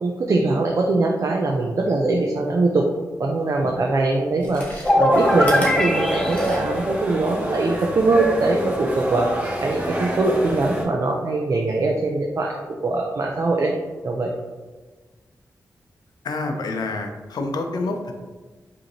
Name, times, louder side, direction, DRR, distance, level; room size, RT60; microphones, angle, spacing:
voice 1, 0.0-2.9 3.2-4.7 5.0-9.3 9.6-13.7 14.0-14.3, right 2 dB, 50° right, 0 dB, 0.4 m, -22 dB
Chewing mastication, 4.3-6.9 7.3-7.4, equal, 20° left, 1.1 m, -37 dB
sound 1, 4.8-7.6, left 1 dB, 5° left, 0.4 m, -22 dB
sound 2, 5.1-10.8, right 1 dB, 25° right, 0.8 m, -28 dB
voice 2, 16.2-18.1, left 3 dB, 85° left, 4 dB, 0.6 m, -27 dB
5.2 x 2.8 x 3.0 m, 1.3 s
wide cardioid pair, 125°, 7 cm